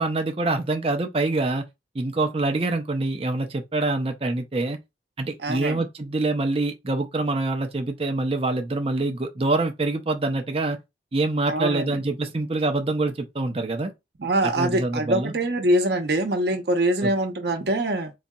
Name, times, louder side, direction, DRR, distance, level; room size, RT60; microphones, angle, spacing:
voice 1, 0.0-1.7 1.9-4.8 5.2-10.8 11.1-13.9 14.4-15.3 17.0-17.1, right 2 dB, 30° right, 0.6 m, -25 dB
voice 2, 5.4-5.8 11.5-12.0 14.2-18.1, right 1 dB, 65° right, 0.8 m, -24 dB
4.0 x 2.7 x 2.3 m
head